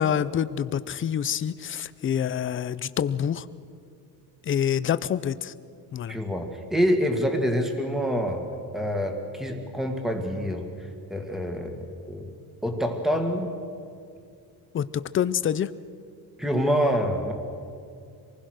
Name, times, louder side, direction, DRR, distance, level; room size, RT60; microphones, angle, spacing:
voice 1, 0.0-3.5 4.4-5.5 5.9-6.2 14.7-15.7, left 9 dB, 30° left, 15 dB, 0.5 m, -26 dB
voice 2, 6.1-8.4 8.7-10.7 11.1-12.3 12.6-13.5 16.4-17.3, equal, ahead, 4 dB, 1.9 m, -26 dB
26.0 x 20.0 x 6.4 m, 2.4 s
cardioid pair, 180°, 39 cm